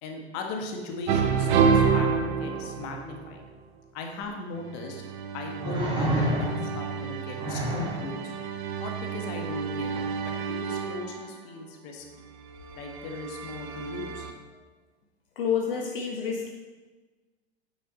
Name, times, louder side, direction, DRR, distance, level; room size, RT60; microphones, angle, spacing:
voice 1, 0.0-3.4 3.9-5.0 5.3-8.3 8.8-12.2 12.7-14.3, left 3 dB, 40° left, 2 dB, 1.6 m, -38 dB
sound 1, 1.1-3.5 4.7-11.3 12.4-14.3, right 6 dB, 45° right, 1.0 m, -29 dB
sound 2, 4.2-4.3 5.6-6.8 7.3-8.0 9.9-10.1, right 1 dB, 15° right, 2.3 m, -28 dB
voice 2, 15.3-16.5, left 7 dB, 55° left, 0 dB, 1.4 m, -28 dB
9.0 x 8.2 x 3.9 m, 1.3 s
figure-of-eight pair, 95°, 33 cm